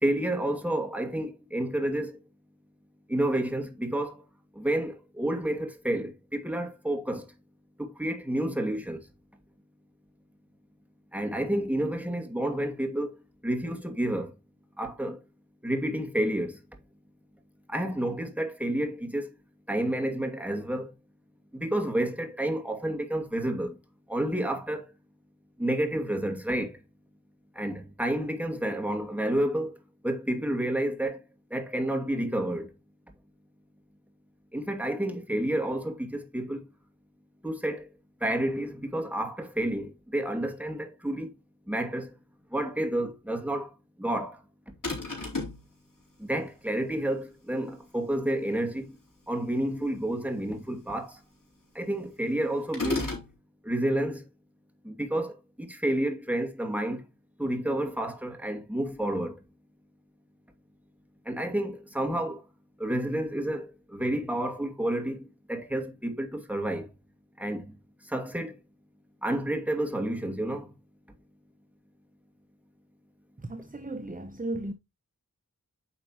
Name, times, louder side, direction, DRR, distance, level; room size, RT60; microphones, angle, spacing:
voice 1, 0.0-2.2 3.1-4.2 4.6-7.2 7.8-9.1 11.1-13.1 13.4-14.3 14.8-15.2 15.6-16.6 17.7-19.3 19.7-20.9 21.5-23.8 24.1-24.9 25.6-26.8 27.5-29.8 30.0-31.2 31.5-32.7 34.5-36.6 37.4-37.9 38.2-41.3 41.7-42.1 42.5-43.7 44.0-44.4 46.2-48.9 49.3-51.2 51.7-53.2 53.6-54.2 54.8-57.0 57.4-59.4 61.3-62.4 62.8-66.9 67.4-67.7 68.1-68.5 69.2-70.7, right 1 dB, 5° right, 2.4 m, -30 dB
sound 1, 44.8-45.6 52.7-53.3, left 3 dB, 70° left, 3.8 m, -32 dB
voice 2, 73.4-74.7, right 1 dB, 25° right, 0.8 m, -35 dB
9.3 x 6.0 x 3.0 m
wide cardioid pair, 50°, 33 cm